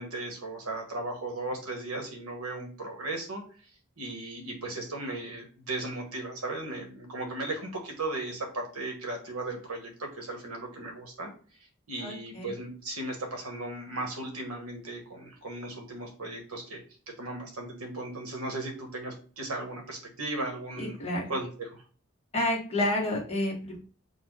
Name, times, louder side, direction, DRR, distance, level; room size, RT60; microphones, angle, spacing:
voice 1, 0.0-3.4 4.0-11.3 11.9-16.8 17.2-20.9 21.3-21.8, right 2 dB, 85° right, 2 dB, 1.2 m, -36 dB
voice 2, 12.0-12.5 20.8-21.3 22.3-23.8, left 1 dB, 30° left, -3 dB, 1.3 m, -30 dB
4.2 x 2.4 x 4.6 m, 0.41 s
head